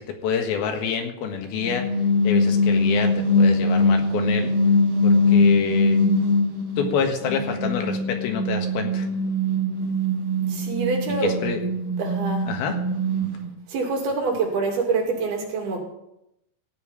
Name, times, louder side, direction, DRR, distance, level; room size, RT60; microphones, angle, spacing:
voice 1, 0.0-1.9 2.2-4.5 5.0-6.0 6.8-9.1 11.2-11.6 12.5-12.8, left 6 dB, 75° left, 5 dB, 3.4 m, -27 dB
sound 1, 1.6-6.9 7.2-13.5, left 2 dB, 40° right, 2.5 m, -22 dB
voice 2, 10.5-11.4 12.0-12.5 13.7-15.8, right 4 dB, 75° right, 1 dB, 4.6 m, -26 dB
16.0 x 5.7 x 9.8 m, 0.82 s
omnidirectional pair, 4.4 m